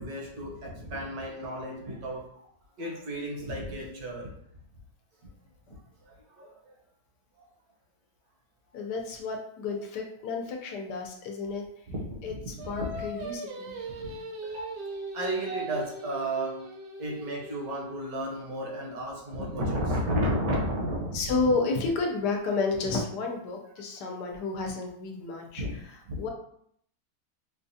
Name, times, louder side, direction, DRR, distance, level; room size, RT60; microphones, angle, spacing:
voice 1, 0.0-2.3 2.8-4.3 6.0-6.7 11.9-13.1 14.0-14.1 14.4-14.8 15.1-16.7 17.0-21.4 25.6-25.8 26.1-26.3, right 1 dB, 65° right, -2 dB, 1.3 m, -33 dB
voice 2, 8.7-11.6 12.2-13.8 21.1-25.6 26.2-26.3, left 3 dB, 75° left, 2 dB, 1.3 m, -31 dB
Singing, 12.6-18.0, right 1 dB, 90° right, 0.5 m, -40 dB
4.9 x 2.3 x 2.7 m, 0.68 s
omnidirectional pair, 1.8 m